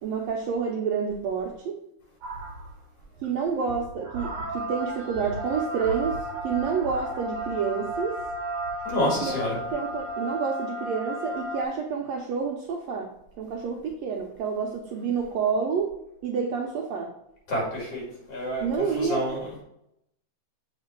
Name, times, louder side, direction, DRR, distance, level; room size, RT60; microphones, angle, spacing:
voice 1, 0.0-1.8 3.2-8.2 9.0-15.9 16.2-17.1 18.6-19.3, right 6 dB, 75° right, 1 dB, 1.6 m, -29 dB
sound 1, 2.2-2.8 3.2-3.3 3.6-11.6, right 1 dB, 55° right, 1.6 m, -34 dB
voice 2, 8.8-9.6 17.5-18.0 18.3-18.6 19.0-19.4, equal, 50° left, -4 dB, 3.3 m, -27 dB
7.4 x 3.7 x 4.3 m, 0.82 s
omnidirectional pair, 3.5 m